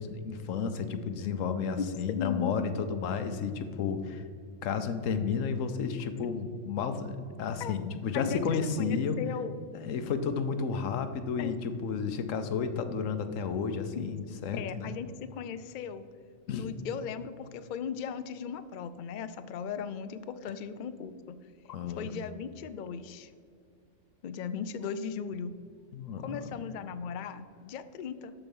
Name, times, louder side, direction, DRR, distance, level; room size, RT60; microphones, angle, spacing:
voice 1, 0.0-4.2 4.6-9.2 9.8-14.9 16.5-16.7 21.7-22.1 25.9-26.5, left 6 dB, 90° left, 9 dB, 1.1 m, -32 dB
voice 2, 1.8-2.5 7.6-7.7 8.1-9.6 10.0-10.1 11.4-11.5 13.9-14.1 14.5-16.0 16.5-21.4 22.0-23.3 24.2-25.5 26.2-28.3, left 7 dB, 65° left, 12 dB, 0.4 m, -37 dB
13.0 x 4.5 x 5.4 m, 2.2 s
omnidirectional pair, 1.3 m